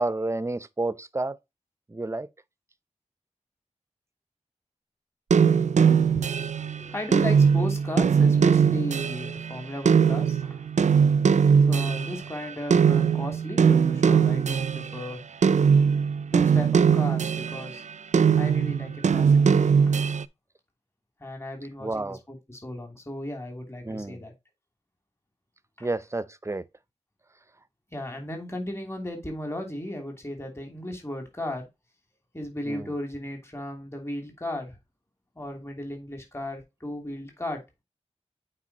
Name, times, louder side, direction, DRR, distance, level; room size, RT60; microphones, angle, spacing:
voice 1, 0.0-1.4 1.9-2.3 21.8-22.2 23.8-24.2 25.8-26.6 32.7-32.9, right 2 dB, 25° right, 0.6 m, -30 dB
sound 1, 5.3-12.4 12.7-15.0 15.4-17.7 18.1-20.2, right 6 dB, 80° right, 0.4 m, -21 dB
voice 2, 6.0-10.7 11.7-15.2 16.3-17.8 18.4-19.8 21.2-24.3 25.8-25.9 27.9-31.7 32.3-34.8 35.4-37.6, left 1 dB, 20° left, 2.9 m, -36 dB
8.5 x 4.8 x 2.9 m
wide cardioid pair, 85°, 12 cm